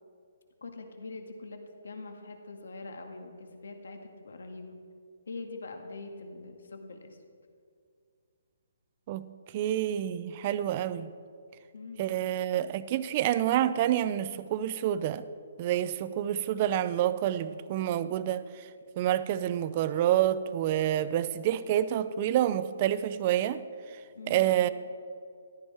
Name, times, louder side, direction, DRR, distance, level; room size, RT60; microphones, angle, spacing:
voice 1, 0.6-4.8 5.3-7.2 11.7-12.1 24.1-24.5, left 3 dB, 80° left, 4 dB, 1.9 m, -43 dB
voice 2, 9.5-11.1 12.0-15.3 15.6-18.7 19.0-23.6 24.3-24.7, right 11 dB, 25° right, 15 dB, 0.4 m, -28 dB
14.5 x 12.5 x 4.4 m, 2.3 s
hypercardioid pair, 175°, 0 cm